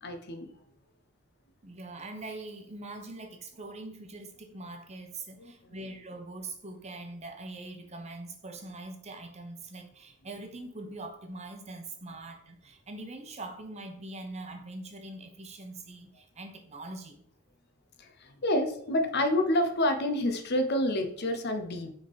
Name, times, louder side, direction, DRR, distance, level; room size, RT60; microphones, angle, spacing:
voice 1, 0.0-0.5 5.4-5.5 18.0-21.9, left 1 dB, 55° left, 7 dB, 0.8 m, -28 dB
voice 2, 1.6-17.2, right 2 dB, 35° right, 4 dB, 0.9 m, -43 dB
6.2 x 3.7 x 4.1 m, 0.66 s
head